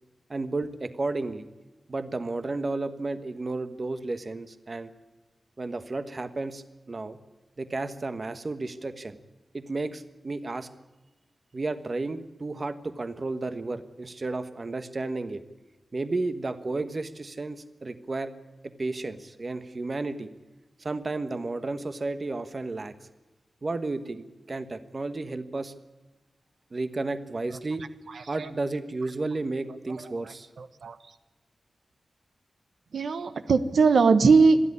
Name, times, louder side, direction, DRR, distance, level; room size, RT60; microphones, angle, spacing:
voice 1, 0.3-1.5 1.9-4.9 5.6-7.2 7.6-9.2 9.5-10.7 11.5-15.4 15.9-18.3 18.6-20.3 20.8-22.9 23.6-25.7 26.7-27.9 28.3-30.5, right 3 dB, 35° right, 10 dB, 1.3 m, -32 dB
voice 2, 28.1-28.5 30.2-30.9 32.9-34.6, right 4 dB, 80° right, 10 dB, 1.2 m, -21 dB
26.5 x 11.0 x 9.7 m, 1.1 s
wide cardioid pair, 145°, 0 cm